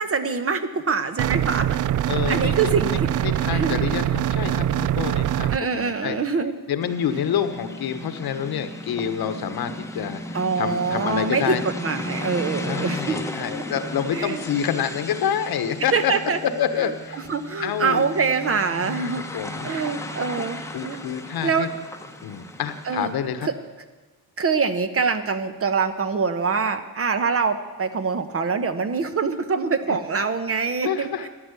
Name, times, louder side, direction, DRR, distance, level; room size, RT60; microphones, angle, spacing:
voice 1, 0.0-1.7 2.3-3.7 5.5-6.5 10.3-13.1 14.1-14.4 15.9-16.4 17.3-19.2 19.6-20.6 20.8-21.1 21.4-21.7 22.9-23.1 23.4-23.5 24.4-31.3, right 5 dB, 35° right, 10 dB, 1.0 m, -24 dB
sound 1, 1.2-5.6, right 11 dB, 50° right, 0.4 m, -23 dB
voice 2, 2.1-6.2 6.7-11.6 12.6-16.1 16.4-17.3 17.6-18.1 18.8-19.7 20.7-21.7 22.2-23.5 29.9-30.0 30.8-31.3, left 8 dB, 70° left, 10 dB, 1.3 m, -28 dB
sound 2, 6.8-23.3, left 1 dB, 5° left, 1.0 m, -35 dB
13.5 x 11.0 x 8.3 m, 1.3 s
cardioid pair, 135°, 39 cm